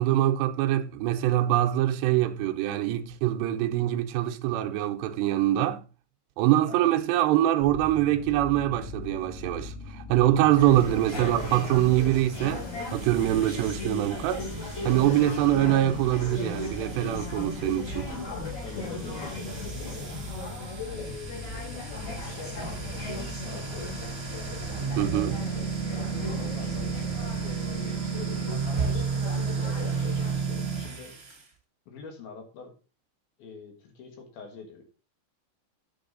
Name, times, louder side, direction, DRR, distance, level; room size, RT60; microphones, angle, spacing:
voice 1, 0.0-5.8 6.4-12.7 12.9-14.5 14.8-18.1 25.0-25.4, right 13 dB, 80° right, 2.7 m, -24 dB
sound 1, 7.6-27.5, left 3 dB, 80° left, 3.3 m, -42 dB
sound 2, 10.5-30.4, left 1 dB, 40° left, 4.9 m, -37 dB
sound 3, 12.3-31.4, right 6 dB, 30° right, 1.8 m, -34 dB
voice 2, 14.8-15.3 18.6-20.1 20.9-24.3 25.0-25.6 26.0-31.2 31.9-32.7 33.4-34.8, left 5 dB, 60° left, 3.0 m, -45 dB
9.5 x 7.8 x 4.0 m
omnidirectional pair, 5.4 m